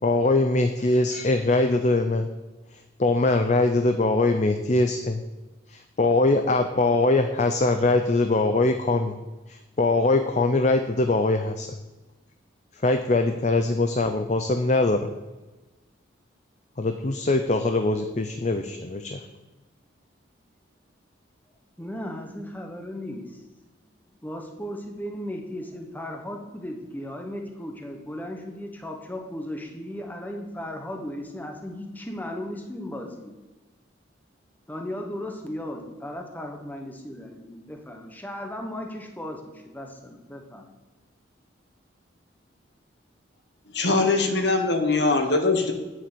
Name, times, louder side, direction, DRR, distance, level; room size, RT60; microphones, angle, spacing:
voice 1, 0.0-2.3 3.0-5.2 5.7-9.2 9.5-11.7 12.8-15.1 16.8-19.3, left 2 dB, 35° left, 7 dB, 0.5 m, -22 dB
voice 2, 21.8-23.4 24.2-33.3 34.7-40.7, left 1 dB, 10° left, 2 dB, 1.1 m, -36 dB
voice 3, 43.7-45.7, left 3 dB, 60° left, 5 dB, 1.4 m, -22 dB
8.8 x 7.3 x 6.8 m, 1.1 s
head